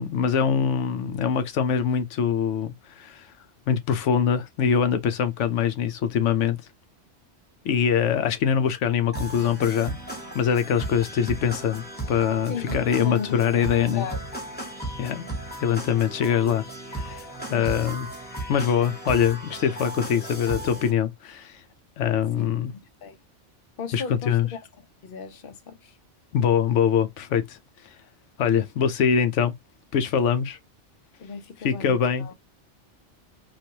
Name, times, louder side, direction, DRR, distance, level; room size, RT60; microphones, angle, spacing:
voice 1, 0.0-3.3 3.7-6.6 7.6-10.0 10.3-14.1 15.0-15.3 15.6-16.6 16.9-18.1 18.5-21.6 22.0-22.7 23.9-24.5 26.3-27.6 28.4-29.5 29.9-30.6 31.6-32.3, left 8 dB, 85° left, 1.0 m, -23 dB
sound 1, 9.1-20.9, right 1 dB, 10° left, 1.0 m, -36 dB
voice 2, 12.5-13.4 14.0-14.2 17.5-17.8 22.4-22.5 23.0-23.2 23.8-24.6 25.0-26.0 31.2-32.3, left 5 dB, 55° left, 0.7 m, -36 dB
3.2 x 2.5 x 2.7 m
omnidirectional pair, 1.2 m